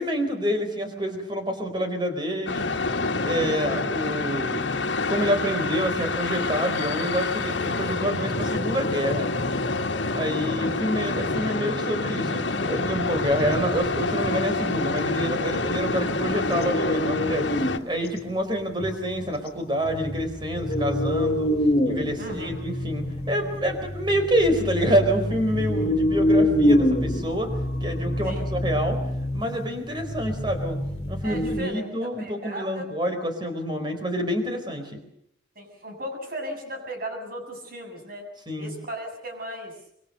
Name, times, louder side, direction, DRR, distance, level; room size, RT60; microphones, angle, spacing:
voice 1, 0.0-2.7 3.2-9.3 10.1-21.5 21.8-27.5 27.8-29.0 29.3-30.8 31.1-35.0 38.5-38.7, equal, 25° right, 6 dB, 4.4 m, -27 dB
sound 1, 2.5-17.8, left 3 dB, 75° left, 1.7 m, -27 dB
sound 2, 12.8-14.7 16.4-17.9 18.2-18.3 18.8-19.3 19.8-31.6, left 1 dB, 35° left, 3.6 m, -26 dB
voice 2, 22.2-22.6 28.2-28.5 31.2-32.9 35.6-38.3 38.6-39.7, equal, 50° right, 4 dB, 7.0 m, -36 dB
26.5 x 23.0 x 6.7 m, 0.76 s
head